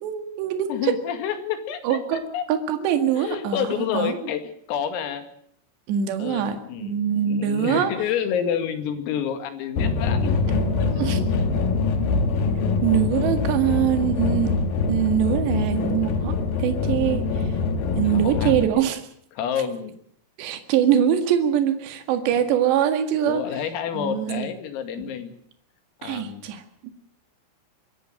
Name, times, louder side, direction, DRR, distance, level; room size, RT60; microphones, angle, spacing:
voice 1, 0.0-0.9 1.8-3.7 3.9-4.1 5.9-7.9 9.8-9.9 10.9-11.2 12.8-14.6 14.9-17.5 18.0-19.1 20.4-23.4 23.9-24.5 26.0-26.6, right 9 dB, 65° right, 8 dB, 3.8 m, -23 dB
voice 2, 0.7-2.5 3.2-4.4 4.7-5.3 6.2-10.4 10.8-11.0 11.5-11.6 18.0-18.9 19.3-19.9 23.3-25.3 26.0-26.5, left 8 dB, 90° left, 8 dB, 5.0 m, -29 dB
sound 1, 9.8-18.6, left 4 dB, 55° left, 2.9 m, -24 dB
25.5 x 13.0 x 9.2 m, 0.66 s
omnidirectional pair, 5.9 m